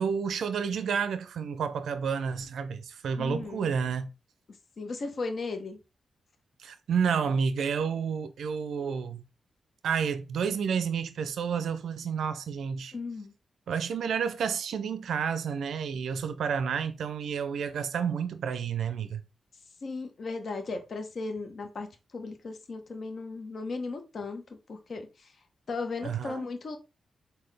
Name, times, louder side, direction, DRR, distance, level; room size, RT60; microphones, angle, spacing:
voice 1, 0.0-4.1 6.6-9.2 9.8-12.9 13.7-19.2 26.0-26.4, right 6 dB, 80° right, 0.4 m, -30 dB
voice 2, 3.2-3.7 4.8-5.8 12.9-13.3 19.8-21.9 22.1-24.4 24.7-25.3 25.7-26.8, left 3 dB, 65° left, 0.8 m, -36 dB
3.9 x 2.2 x 3.3 m
cardioid pair, 55°, 0 cm